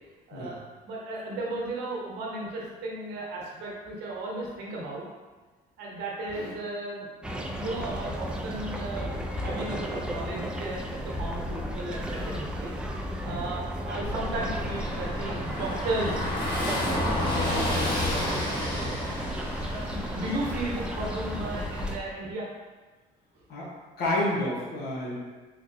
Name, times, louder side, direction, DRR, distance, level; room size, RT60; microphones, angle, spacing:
voice 1, 0.8-5.0 5.8-10.8 11.2-18.8 19.7-22.5, right 2 dB, 90° right, -3 dB, 0.9 m, -35 dB
sound 1, 7.2-22.0, equal, 5° right, 0.3 m, -34 dB
Car passing by / Engine, 14.0-21.9, left 1 dB, 25° left, 1.1 m, -31 dB
voice 2, 24.0-25.2, left 1 dB, 75° left, -5 dB, 1.0 m, -29 dB
3.6 x 3.0 x 2.6 m, 1.3 s
cardioid pair, 110°, 17 cm